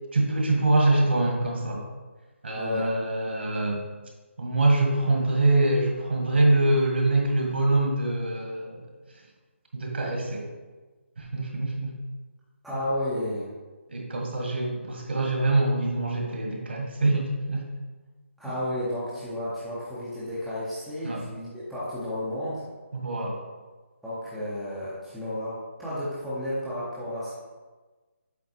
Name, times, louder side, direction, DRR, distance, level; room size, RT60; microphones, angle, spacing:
voice 1, 0.1-1.8 2.4-3.8 4.4-8.8 9.7-10.5 11.2-12.0 13.9-17.7 18.4-18.5 21.0-21.2 22.9-23.4, right 2 dB, 55° right, 1 dB, 1.5 m, -24 dB
voice 2, 2.5-2.9 12.6-13.5 18.4-22.6 24.0-27.3, left 1 dB, ahead, -12 dB, 0.6 m, -32 dB
7.7 x 3.8 x 4.2 m, 1.3 s
hypercardioid pair, 175°, 7 cm